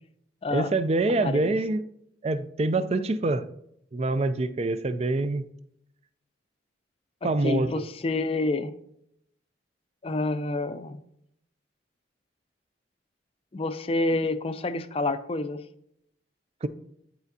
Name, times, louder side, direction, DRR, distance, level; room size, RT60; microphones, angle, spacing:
voice 1, 0.5-1.8 2.2-3.5 3.9-5.4 7.2-7.9 16.6-16.7, right 2 dB, 35° right, 12 dB, 0.4 m, -25 dB
voice 2, 1.2-1.5 7.4-8.7 10.0-11.0 13.5-15.6, left 2 dB, 30° left, 11 dB, 0.4 m, -28 dB
10.5 x 4.4 x 2.7 m, 0.73 s
head